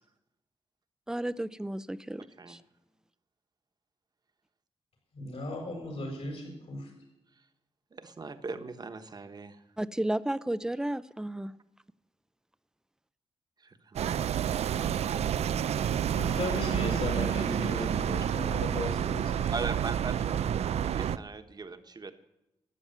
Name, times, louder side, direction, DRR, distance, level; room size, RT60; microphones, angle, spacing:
voice 1, 1.1-2.6 9.8-11.5, right 1 dB, 5° right, 17 dB, 0.5 m, -33 dB
voice 2, 5.1-6.9 15.7-15.9 16.1-19.6, left 2 dB, 75° left, 0 dB, 7.1 m, -36 dB
voice 3, 7.9-9.6 13.6-14.8 19.5-20.4 20.7-22.1, right 4 dB, 40° right, 9 dB, 1.2 m, -40 dB
sound 1, 14.0-21.2, right 9 dB, 90° right, 0.4 m, -29 dB
13.5 x 9.4 x 9.1 m, 0.91 s
wide cardioid pair, 115°, 11 cm